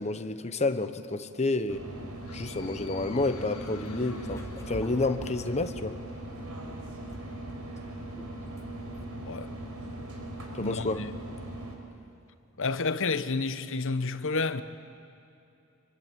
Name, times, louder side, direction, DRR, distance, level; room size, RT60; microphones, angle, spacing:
voice 1, 0.0-1.8 2.3-6.0 10.5-11.0, left 2 dB, 30° left, 1.1 m, -30 dB
sound 1, 1.7-11.7, right 1 dB, 85° right, 4.8 m, -40 dB
sound 2, 2.2-5.9, left 6 dB, 80° left, 2.0 m, -51 dB
sound 3, 3.9-5.9 6.7-8.7 8.9-9.1, equal, 15° left, 2.5 m, -46 dB
voice 2, 9.2-9.5 10.6-11.2 12.6-14.6, left 3 dB, 60° left, 1.1 m, -30 dB
25.5 x 23.5 x 9.0 m
head